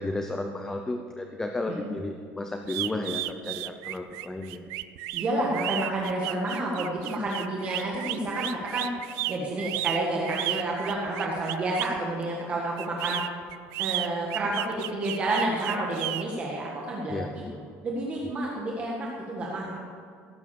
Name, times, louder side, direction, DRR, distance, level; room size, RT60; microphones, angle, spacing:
voice 1, 0.0-4.6 17.1-17.6 18.3-18.4, left 2 dB, 10° left, 4 dB, 0.6 m, -33 dB
sound 1, 2.7-12.0 12.8-16.2, right 18 dB, 75° right, 0.5 m, -33 dB
voice 2, 5.1-8.9 9.3-13.2 13.8-17.3 17.8-19.8, right 2 dB, 25° right, -3 dB, 1.7 m, -30 dB
17.0 x 8.3 x 6.9 m, 2.3 s
cardioid pair, 175°, 5 cm